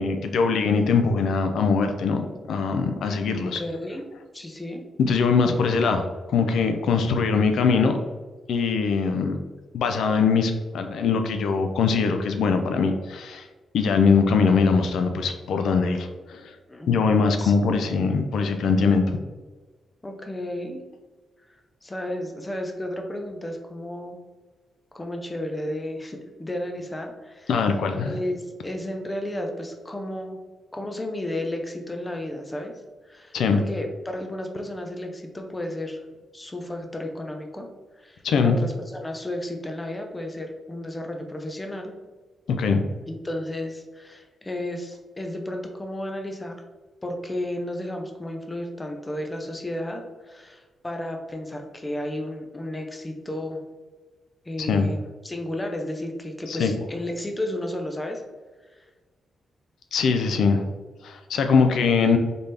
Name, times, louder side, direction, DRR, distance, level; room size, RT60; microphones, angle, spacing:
voice 1, 0.0-3.6 5.0-8.0 8.5-9.4 9.7-13.5 13.7-16.6 16.9-19.2 27.5-28.2 33.3-33.6 38.2-38.6 42.5-42.8 54.6-54.9 56.5-56.7 59.9-60.7 61.0-62.2, left 5 dB, 80° left, 6 dB, 0.4 m, -22 dB
voice 2, 3.5-4.0 4.3-4.8 16.7-17.1 17.4-17.5 17.8-18.0 20.0-20.8 21.8-24.2 24.9-27.5 28.0-30.4 30.7-32.7 33.0-36.0 36.3-37.7 38.0-41.9 43.1-46.6 47.0-53.6 54.5-58.2 58.7-58.9, left 1 dB, 15° left, 3 dB, 0.5 m, -33 dB
4.1 x 3.4 x 3.3 m, 1.3 s
wide cardioid pair, 150°, 0 cm